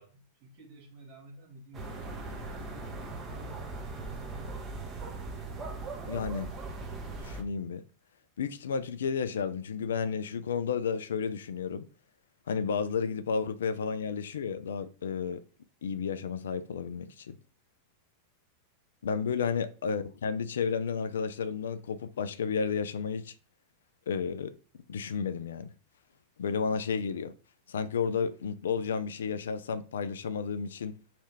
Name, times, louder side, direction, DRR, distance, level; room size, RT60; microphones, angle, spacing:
voice 1, 0.0-3.1 19.3-19.5, right 2 dB, 45° right, 1.4 m, -53 dB
sound 1, 1.7-7.4, right 3 dB, 25° right, 0.9 m, -39 dB
voice 2, 6.1-6.5 7.2-7.8 8.4-11.9 12.5-15.4 15.8-17.4 19.0-23.3 24.1-24.5 24.9-25.7 26.4-27.3 27.7-31.0, left 6 dB, 65° left, 0.3 m, -32 dB
3.3 x 2.7 x 4.6 m
figure-of-eight pair, 90°, 0 cm